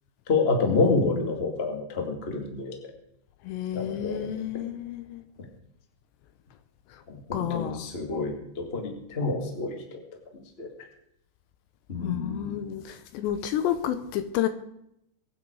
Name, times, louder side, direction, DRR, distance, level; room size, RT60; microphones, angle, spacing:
voice 1, 0.3-2.8 3.7-4.3 7.1-10.0 10.6-10.7 11.9-12.5, left 3 dB, 45° left, 2 dB, 0.7 m, -28 dB
voice 2, 3.4-5.2 7.3-7.9 12.0-14.5, left 11 dB, 80° left, 11 dB, 2.7 m, -30 dB
23.5 x 9.4 x 4.8 m, 0.79 s
omnidirectional pair, 5.6 m